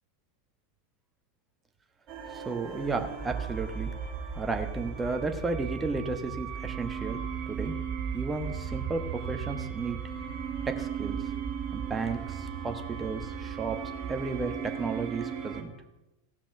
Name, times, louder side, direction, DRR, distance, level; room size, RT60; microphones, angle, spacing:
sound 1, 2.1-15.6, right 7 dB, 35° right, 2.1 m, -36 dB
voice 1, 2.3-3.9 4.3-7.2 7.5-7.8 8.1-10.0 10.7-11.2 11.7-13.8 14.1-15.7, right 3 dB, 15° right, 6 dB, 1.3 m, -33 dB
16.0 x 5.9 x 5.9 m, 0.97 s
figure-of-eight pair, 85°, 0 cm